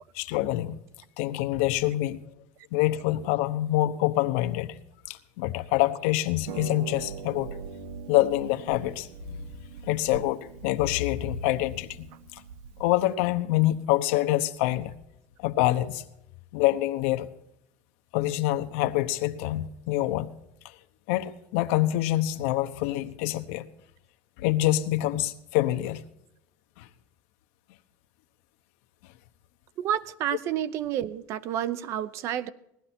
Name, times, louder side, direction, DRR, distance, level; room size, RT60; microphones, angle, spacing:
voice 1, 0.1-0.8 1.2-2.3 2.7-4.8 5.1-7.6 8.1-9.5 9.8-12.1 12.3-12.4 12.8-14.9 15.4-16.0 16.5-17.3 18.1-20.3 21.1-23.6 24.4-26.0 26.8-26.9, left 15 dB, 75° left, 1.0 m, -26 dB
Harp, 6.4-13.1, right 7 dB, 80° right, 0.8 m, -42 dB
voice 2, 29.8-32.5, right 10 dB, 45° right, 0.7 m, -30 dB
17.5 x 12.5 x 4.3 m
cardioid pair, 160°, 7 cm